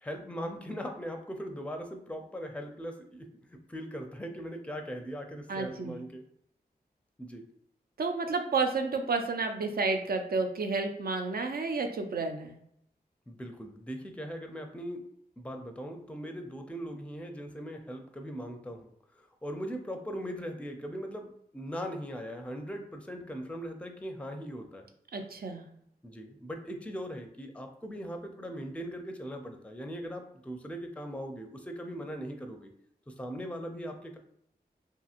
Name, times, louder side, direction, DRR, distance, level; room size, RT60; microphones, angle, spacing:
voice 1, 0.0-3.3 3.7-6.2 7.2-7.5 13.3-15.0 15.4-18.9 19.2-24.9 26.0-32.7 33.1-34.2, equal, 5° left, 4 dB, 0.4 m, -40 dB
voice 2, 5.5-5.9 8.0-12.6 25.1-25.7, right 4 dB, 65° right, 5 dB, 0.4 m, -31 dB
2.7 x 2.6 x 2.4 m, 0.72 s
cardioid pair, 50°, 17 cm